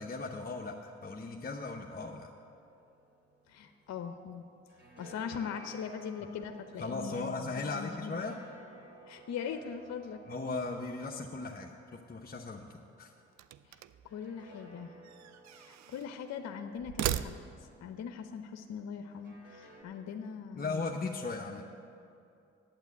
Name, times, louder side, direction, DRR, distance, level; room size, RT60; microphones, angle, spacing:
voice 1, 0.0-2.3 6.8-8.4 10.3-13.1 20.6-21.6, left 3 dB, 30° left, 1 dB, 0.8 m, -37 dB
sound 1, 2.5-4.2 4.5-13.2 14.0-18.1 19.1-19.8, right 1 dB, 35° right, 3.3 m, -57 dB
voice 2, 3.5-4.4 5.0-8.3 9.1-10.2 13.7-13.8 14.0-14.9 15.5-17.4 17.8-20.9, left 7 dB, 60° left, 7 dB, 0.7 m, -41 dB
sound 2, 13.3-14.1 15.0-16.1 16.8-17.8, right 12 dB, 65° right, 0.5 m, -38 dB
9.0 x 8.3 x 8.2 m, 2.6 s
supercardioid pair, 55°, 30 cm